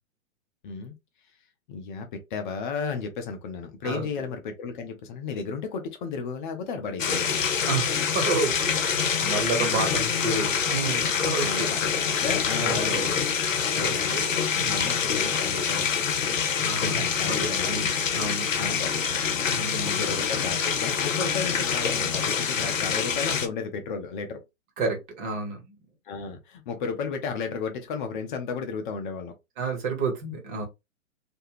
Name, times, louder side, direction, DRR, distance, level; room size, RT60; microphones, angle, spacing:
voice 1, 0.6-0.9 1.7-7.5 9.5-10.0 11.4-13.3 13.8-14.2 14.6-16.4 16.8-17.8 18.6-19.2 19.8-24.4 26.1-29.4, left 5 dB, 40° left, 0.6 m, -34 dB
sound 1, 7.0-23.5, left 6 dB, 80° left, 0.7 m, -26 dB
voice 2, 7.7-11.7 12.6-13.1 13.5-14.9 16.6-18.5 19.5-20.0 24.8-25.7 29.6-30.7, right 3 dB, 40° right, 1.2 m, -31 dB
2.5 x 2.2 x 3.0 m
figure-of-eight pair, 115°, 38 cm